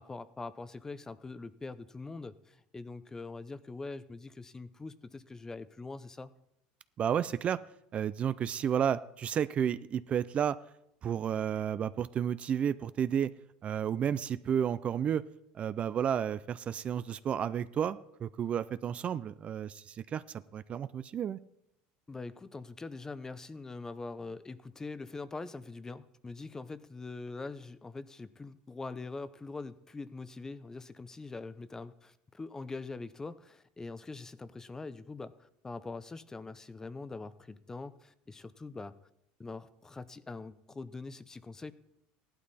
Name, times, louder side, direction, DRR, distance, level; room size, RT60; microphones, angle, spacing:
voice 1, 0.0-6.3 22.1-38.9 39.4-41.7, left 3 dB, 15° left, 15 dB, 0.6 m, -43 dB
voice 2, 7.0-7.6 7.9-10.6 11.0-13.3 13.6-15.2 15.5-21.4, right 8 dB, 30° right, 15 dB, 0.4 m, -32 dB
16.0 x 11.5 x 4.2 m, 0.81 s
supercardioid pair, 135°, 4 cm